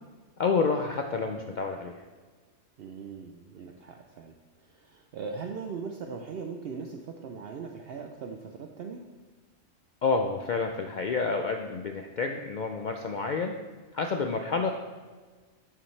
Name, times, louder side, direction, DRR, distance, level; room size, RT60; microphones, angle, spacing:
voice 1, 0.4-2.0 10.0-13.5 13.9-14.7, left 4 dB, 65° left, 3 dB, 0.4 m, -29 dB
voice 2, 2.8-9.1, right 5 dB, 60° right, 3 dB, 0.7 m, -40 dB
8.6 x 7.0 x 3.2 m, 1.4 s
omnidirectional pair, 1.3 m